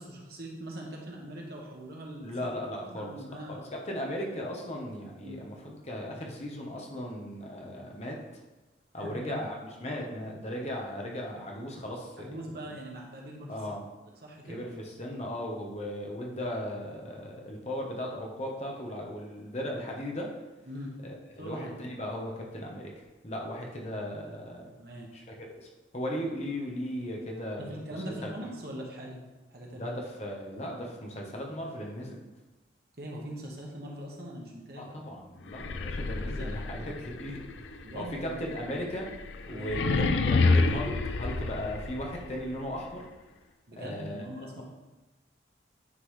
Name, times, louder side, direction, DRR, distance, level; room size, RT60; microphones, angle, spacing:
voice 1, 0.0-2.3 2.8-3.6 5.2-5.4 9.0-9.4 12.2-13.5 14.2-14.7 20.7-20.9 21.4-21.7 24.8-25.1 27.6-29.2 29.5-29.9 33.0-35.0 35.8-36.6 37.8-38.4 39.5-39.8 43.7-44.6, right 1 dB, 55° right, -2 dB, 1.2 m, -41 dB
voice 2, 2.2-8.2 8.9-12.7 13.5-13.8 14.4-20.3 21.0-24.7 25.1-28.3 29.7-32.2 34.8-39.1 39.5-43.1 43.7-44.6, equal, 35° left, -1 dB, 1.0 m, -37 dB
sound 1, 35.5-42.4, left 3 dB, 80° left, 0.4 m, -29 dB
9.6 x 3.8 x 3.2 m, 1.1 s
head